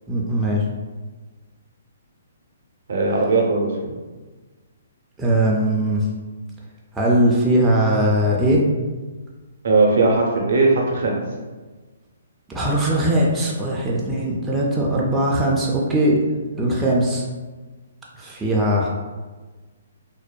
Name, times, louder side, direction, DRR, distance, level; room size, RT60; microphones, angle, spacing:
voice 1, 0.1-0.6 5.2-6.0 6.9-8.6 12.5-16.2 16.6-17.2 18.1-18.9, right 1 dB, 10° right, -4 dB, 0.3 m, -20 dB
voice 2, 2.9-3.7 9.6-11.2, right 3 dB, 65° right, -1 dB, 0.6 m, -18 dB
2.6 x 2.1 x 2.3 m, 1.3 s
hypercardioid pair, 145°, 0 cm